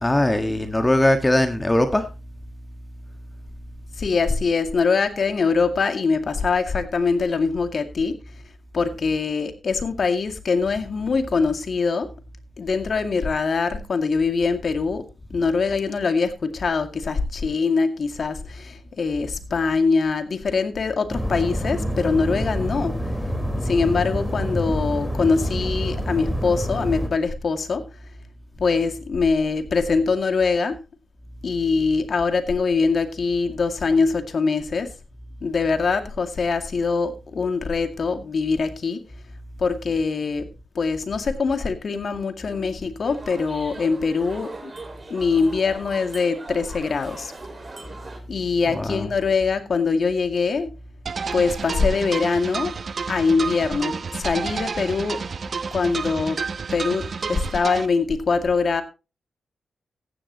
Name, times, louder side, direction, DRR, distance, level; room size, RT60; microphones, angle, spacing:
voice 1, 0.0-2.1 48.7-49.1, left 1 dB, 20° left, 7 dB, 1.6 m, -20 dB
voice 2, 4.0-8.2 8.7-12.1 12.6-23.1 23.6-27.8 28.6-30.8 31.4-34.9 35.4-39.0 39.6-40.5 40.7-44.7 45.1-47.3 48.3-50.7 51.3-52.8 53.1-55.2 55.7-56.4 56.7-58.8, left 4 dB, 60° left, 7 dB, 2.2 m, -23 dB
sound 1, 21.1-27.1, equal, ahead, 4.3 m, -27 dB
sound 2, 43.0-48.2, right 3 dB, 40° right, 4.9 m, -40 dB
sound 3, 51.1-57.9, right 5 dB, 60° right, 0.9 m, -30 dB
15.0 x 11.0 x 3.0 m, 0.30 s
cardioid pair, 50°, 0 cm